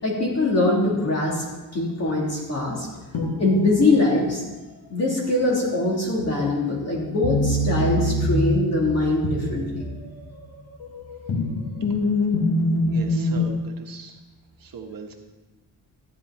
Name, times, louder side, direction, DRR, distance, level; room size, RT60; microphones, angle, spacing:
voice 1, 0.0-1.4 1.7-2.9 3.4-4.4 4.9-9.8, left 2 dB, 40° left, -4 dB, 3.3 m, -22 dB
sound 1, 3.1-3.8 7.2-10.3 10.8-13.5, left 1 dB, 65° left, 1.8 m, -24 dB
voice 2, 12.9-14.2 14.6-15.1, right 5 dB, 55° right, 2 dB, 1.3 m, -39 dB
13.5 x 10.0 x 4.3 m, 1.2 s
wide cardioid pair, 175°, 40 cm